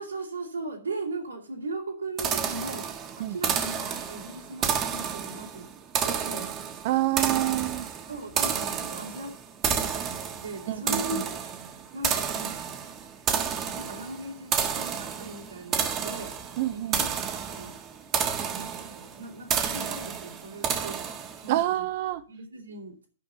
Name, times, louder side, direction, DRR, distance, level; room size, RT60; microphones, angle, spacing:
voice 1, 0.0-2.9 3.2-5.7 6.0-6.5 8.1-9.3 9.6-9.9 10.4-11.3 11.9-12.5 13.3-16.3 16.7-17.1 17.5-17.7 18.4-21.0 21.4-21.9 22.3-23.1, right 2 dB, 90° right, 3.1 m, -38 dB
sound 1, 2.2-21.6, right 7 dB, 25° right, 1.7 m, -31 dB
voice 2, 3.2-3.6 6.8-7.9 10.7-11.2 16.6-17.0 21.5-22.2, right 15 dB, 50° right, 1.0 m, -27 dB
10.0 x 5.2 x 7.7 m
hypercardioid pair, 120°, 0 cm